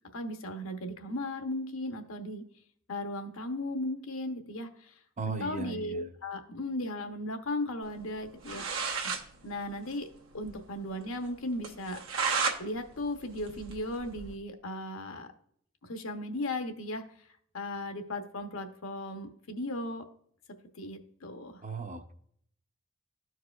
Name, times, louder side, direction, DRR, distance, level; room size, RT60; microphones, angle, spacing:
voice 1, 0.1-2.4 2.9-4.9 5.4-8.6 9.0-9.1 9.4-10.1 10.3-12.0 12.6-15.3 15.8-17.0 17.5-20.0 20.7-21.6, left 1 dB, 75° left, 6 dB, 0.9 m, -36 dB
voice 2, 5.2-6.1 21.6-22.1, right 4 dB, 35° right, 7 dB, 0.6 m, -37 dB
sound 1, 8.2-8.3 8.4-9.2 9.6-9.7 9.9-10.0 10.4-10.5 10.9-11.0 11.6-12.6 13.0-14.3, right 5 dB, 80° right, 1.1 m, -32 dB
13.5 x 4.7 x 2.3 m, 0.64 s
head